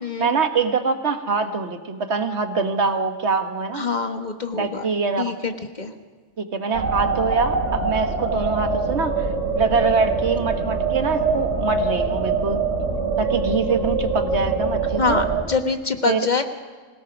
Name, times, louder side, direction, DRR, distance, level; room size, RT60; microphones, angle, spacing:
voice 1, 0.2-3.9 4.5-5.3 6.4-9.3 9.5-12.6 13.2-15.2 16.1-16.4, right 4 dB, 65° right, 7 dB, 1.7 m, -24 dB
voice 2, 3.7-4.9 5.2-5.5 5.8-5.9 15.0-16.4, left 4 dB, 40° left, 6 dB, 1.4 m, -24 dB
sound 1, 6.7-15.4, right 4 dB, 90° right, 3.1 m, -24 dB
25.0 x 17.5 x 6.1 m, 1.5 s
omnidirectional pair, 1.3 m